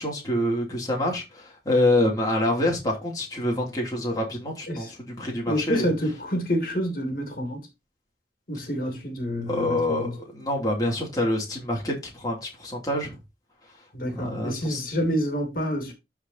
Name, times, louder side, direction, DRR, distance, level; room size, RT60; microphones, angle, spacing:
voice 1, 0.0-5.9 9.5-13.2 14.1-14.8, left 1 dB, 20° left, 2.5 m, -26 dB
voice 2, 5.5-7.6 8.5-10.1 13.9-15.9, equal, 55° left, 2.6 m, -28 dB
13.5 x 4.8 x 2.7 m
head